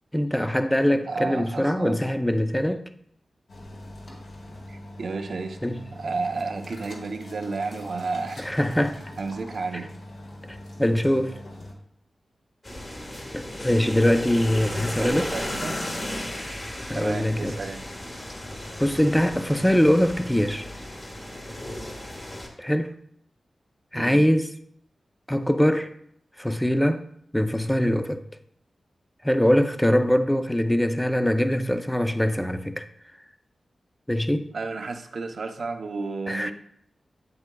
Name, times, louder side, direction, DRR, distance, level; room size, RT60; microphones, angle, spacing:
voice 1, 0.1-2.8 5.6-5.8 8.4-9.0 10.5-11.4 13.3-15.3 16.9-17.6 18.8-20.7 22.6-22.9 23.9-24.5 25.3-25.9 26.4-27.0 27.3-28.2 29.2-32.8 34.1-34.5 36.3-36.5, equal, 5° left, 0.4 m, -23 dB
voice 2, 1.0-2.0 4.7-5.6 5.9-8.5 9.2-9.9 15.0-15.8 16.9-17.8 23.9-24.2 34.5-36.5, right 4 dB, 60° right, 0.7 m, -32 dB
sound 1, 3.5-11.7, left 1 dB, 65° left, 1.5 m, -42 dB
sound 2, 12.6-22.5, left 1 dB, 25° left, 1.4 m, -35 dB
8.5 x 7.8 x 2.3 m
wide cardioid pair, 135°, 0 cm